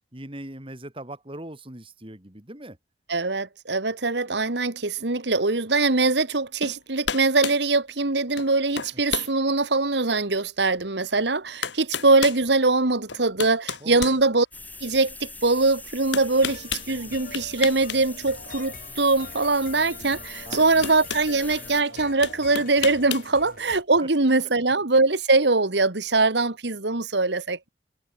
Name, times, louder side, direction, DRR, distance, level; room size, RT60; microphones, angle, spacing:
voice 1, 0.1-2.8 13.8-14.2 20.4-20.6, right 1 dB, 30° right, 3.2 m, -40 dB
voice 2, 3.1-14.5 14.8-27.7, right 3 dB, 65° right, 1.7 m, -22 dB
sound 1, 6.6-6.8 7.0-7.6 8.4-8.5 8.8-9.3 9.9-10.0 11.1-11.2 11.6-12.4 13.1-14.8 16.1-16.9 17.3-18.0 18.3-18.5 19.9-20.0 20.5-21.3 22.2-23.3, left 7 dB, 75° left, 2.4 m, -31 dB
sound 2, 14.5-21.8, left 3 dB, 10° left, 6.5 m, -42 dB
sound 3, 16.4-23.8, left 4 dB, 50° left, 1.8 m, -44 dB
head